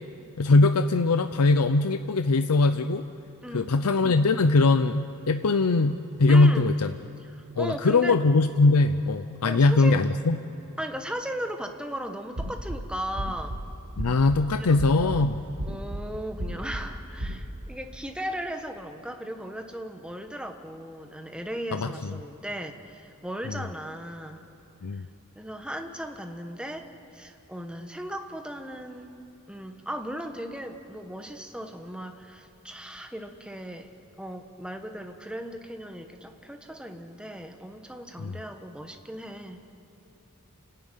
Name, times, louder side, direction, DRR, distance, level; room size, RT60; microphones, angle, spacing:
voice 1, 0.4-3.0 3.5-6.9 7.6-10.4 14.0-15.4 21.7-21.9 23.5-23.6 24.8-25.1 38.2-38.4, left 3 dB, 85° left, 9 dB, 0.6 m, -21 dB
voice 2, 3.4-3.7 6.3-6.7 7.3-8.2 9.4-10.0 10.8-13.6 14.5-15.3 15.7-24.5 24.9-25.0 25.3-29.1 29.5-33.9 34.2-39.6, equal, 5° right, 5 dB, 1.3 m, -37 dB
sound 1, 12.4-12.8 13.2-13.6 14.0-14.4 14.8-15.2 15.6-16.0 16.4-16.8 17.2-17.4, right 1 dB, 80° right, 1.9 m, -32 dB
29.0 x 12.0 x 9.2 m, 3.0 s
head